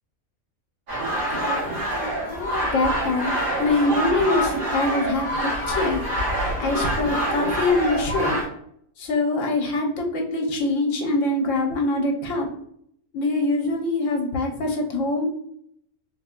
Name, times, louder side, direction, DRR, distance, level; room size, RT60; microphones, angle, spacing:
sound 1, 0.9-8.5, right 1 dB, 85° right, 1.7 m, -26 dB
voice 1, 1.3-1.6 1.9-3.3 3.6-5.3 5.7-6.0 6.6-8.4 9.0-12.5 13.1-15.3, left 2 dB, 65° left, 1 dB, 1.0 m, -24 dB
3.8 x 2.1 x 2.3 m, 0.69 s
omnidirectional pair, 1.5 m